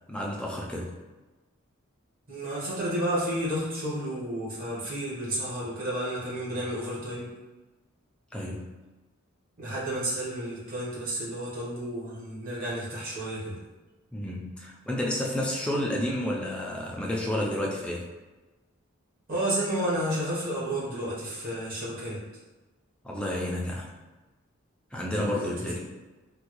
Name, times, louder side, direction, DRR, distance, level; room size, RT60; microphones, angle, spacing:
voice 1, 0.1-0.9 8.3-8.7 14.1-18.1 23.0-23.9 24.9-25.8, left 1 dB, 5° left, -3 dB, 0.3 m, -30 dB
voice 2, 2.3-7.3 9.6-13.6 19.3-22.2 25.2-25.8, right 1 dB, 40° right, -8 dB, 1.1 m, -31 dB
3.4 x 2.2 x 3.0 m, 1.2 s
head